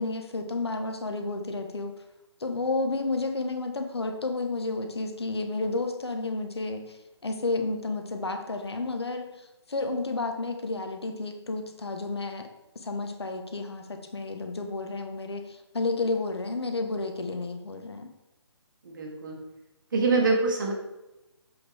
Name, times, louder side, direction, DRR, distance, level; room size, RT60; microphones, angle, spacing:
voice 1, 0.0-1.9 2.4-7.0 7.2-9.3 9.7-12.5 12.7-18.1, left 3 dB, 60° left, 5 dB, 1.1 m, -31 dB
voice 2, 18.9-19.4 19.9-20.7, right 3 dB, 45° right, 0 dB, 1.8 m, -25 dB
7.6 x 5.4 x 3.5 m, 0.99 s
figure-of-eight pair, 145°, 15 cm